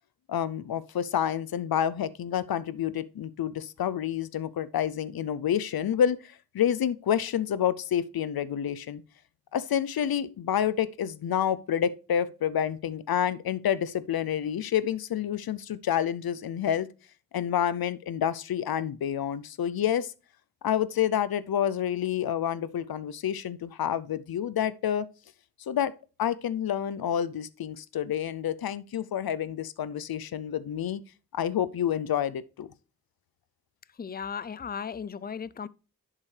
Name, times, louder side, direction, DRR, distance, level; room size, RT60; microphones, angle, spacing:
voice 1, 0.3-9.0 9.5-16.9 17.3-20.1 20.6-25.1 25.7-25.9 26.2-31.0 31.3-32.7, left 9 dB, 85° left, 0.5 m, -28 dB
voice 2, 34.0-35.7, left 6 dB, 25° left, 0.4 m, -36 dB
10.5 x 7.4 x 3.3 m
cardioid pair, 45°, 35 cm